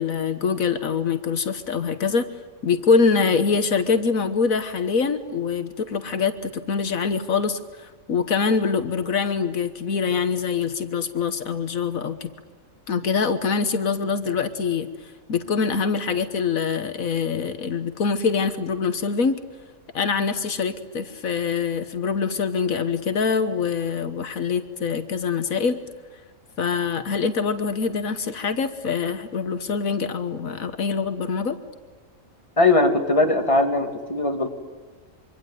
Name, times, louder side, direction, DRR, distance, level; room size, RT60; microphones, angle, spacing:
voice 1, 0.0-2.3 2.6-12.3 12.9-19.4 19.9-25.8 26.6-31.6, left 5 dB, 80° left, 9 dB, 1.7 m, -24 dB
voice 2, 32.6-34.5, left 2 dB, 25° left, 4 dB, 2.8 m, -20 dB
25.5 x 25.0 x 9.3 m, 1.4 s
omnidirectional pair, 1.4 m